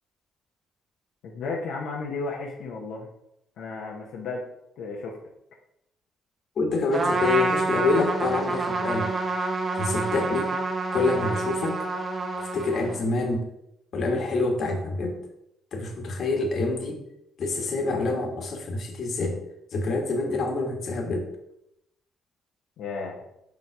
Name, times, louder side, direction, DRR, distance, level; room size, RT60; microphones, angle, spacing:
voice 1, 1.2-3.1 3.6-4.4 4.8-5.2 22.8-23.2, left 3 dB, 80° left, -2 dB, 1.0 m, -33 dB
voice 2, 6.6-9.1 9.7-10.5 10.9-11.8 12.4-13.5 13.9-15.2 15.7-17.0 17.4-19.4 19.7-21.3, left 3 dB, 60° left, 3 dB, 1.6 m, -26 dB
Trumpet, 6.9-13.1, right 3 dB, 40° right, 0.9 m, -28 dB
5.3 x 5.3 x 4.7 m, 0.80 s
cardioid pair, 90°, 0 cm